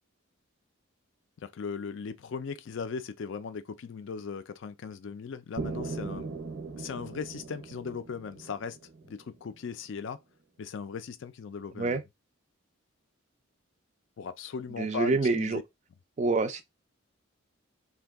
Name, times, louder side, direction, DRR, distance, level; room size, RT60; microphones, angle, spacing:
voice 1, 1.4-6.3 6.8-8.8 9.0-10.2 10.6-12.0 14.2-15.6, left 6 dB, 60° left, 0.3 m, -38 dB
sound 1, 5.6-9.5, right 4 dB, 70° right, 0.6 m, -39 dB
voice 2, 14.8-15.6 16.2-16.6, right 3 dB, 35° right, 0.3 m, -26 dB
2.6 x 2.2 x 3.4 m
head